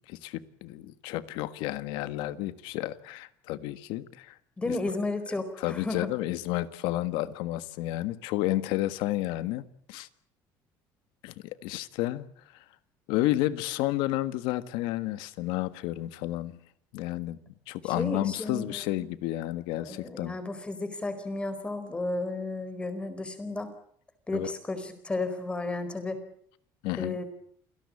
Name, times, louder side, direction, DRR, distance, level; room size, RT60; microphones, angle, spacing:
voice 1, 0.1-4.4 4.7-4.8 5.6-10.1 11.2-12.3 13.1-16.5 16.9-17.4 17.7-20.3 24.3-24.5 26.8-27.2, left 16 dB, 85° left, 1.6 m, -31 dB
voice 2, 4.6-6.1 17.8-18.8 19.7-23.7 24.3-26.2 27.0-27.2, left 2 dB, 15° left, 4.5 m, -33 dB
28.5 x 17.5 x 8.6 m
cardioid pair, 145°, 8 cm